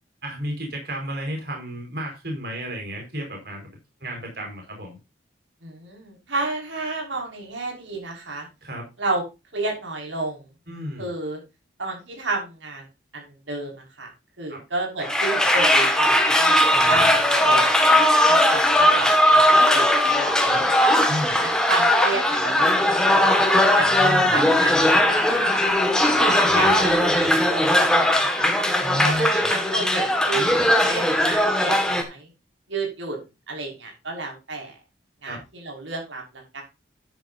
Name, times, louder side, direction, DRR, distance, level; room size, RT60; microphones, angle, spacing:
voice 1, 0.2-5.0 8.6-8.9 10.7-11.1 14.5-14.6 16.7-17.1 20.4-20.6 21.1-21.4 23.7-24.3 28.8-29.5 35.2-35.4, equal, 55° right, 1 dB, 5.0 m, -32 dB
voice 2, 5.6-8.5 9.0-9.2 9.5-10.4 11.0-11.4 11.8-12.8 13.1-14.1 14.4-17.7 17.9-19.5 19.7-20.8 21.3-23.3 23.7-28.5 28.9-30.5 30.8-32.3 32.7-33.2 33.5-34.8 35.2-36.6, right 3 dB, 90° right, 1 dB, 5.7 m, -31 dB
sound 1, 15.0-32.0, left 1 dB, 5° left, 1.8 m, -19 dB
11.0 x 10.5 x 2.7 m, 0.26 s
head